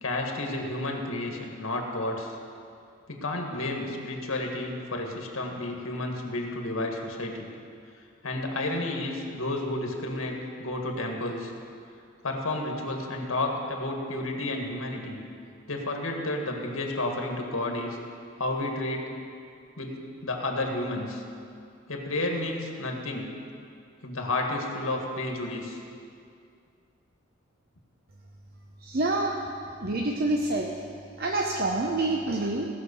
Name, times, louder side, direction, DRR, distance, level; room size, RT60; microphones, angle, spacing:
voice 1, 0.0-2.4 3.1-7.5 8.2-11.5 12.2-15.2 15.7-18.0 18.4-19.1 19.8-21.2 21.9-23.3 24.0-25.8, left 2 dB, 80° left, 2 dB, 1.8 m, -31 dB
voice 2, 28.8-29.4 29.8-30.7 31.2-32.7, right 2 dB, 50° right, 1 dB, 0.7 m, -27 dB
17.5 x 5.9 x 6.9 m, 2.4 s
head